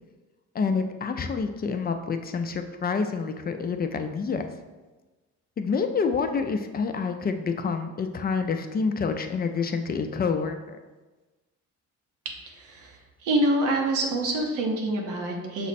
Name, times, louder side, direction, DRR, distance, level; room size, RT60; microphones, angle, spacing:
voice 1, 0.5-4.5 5.6-10.8, left 5 dB, 30° left, 7 dB, 0.4 m, -28 dB
voice 2, 12.5-13.0 13.2-15.7, right 1 dB, 90° right, 1 dB, 0.9 m, -26 dB
5.9 x 2.1 x 4.1 m, 1.2 s
cardioid pair, 90°, 30 cm